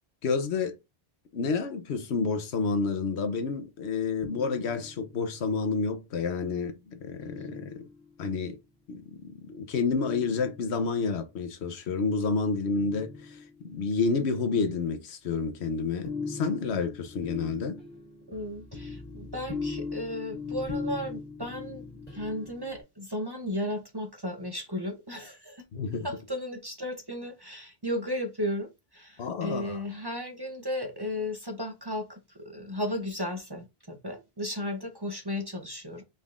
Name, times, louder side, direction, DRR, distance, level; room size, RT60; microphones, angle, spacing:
voice 1, 0.2-0.7 1.3-7.8 8.2-8.6 8.9-13.4 13.7-17.8 25.7-26.1 29.2-29.8, left 4 dB, 85° left, 1.1 m, -29 dB
sound 1, 4.2-5.3 7.2-8.3 9.9-11.0 12.8-13.8 15.5-22.8, left 4 dB, 40° left, 2.6 m, -39 dB
voice 2, 18.3-21.8 22.1-25.7 26.0-36.0, left 1 dB, 25° right, 0.7 m, -35 dB
5.3 x 4.0 x 2.4 m
omnidirectional pair, 1.1 m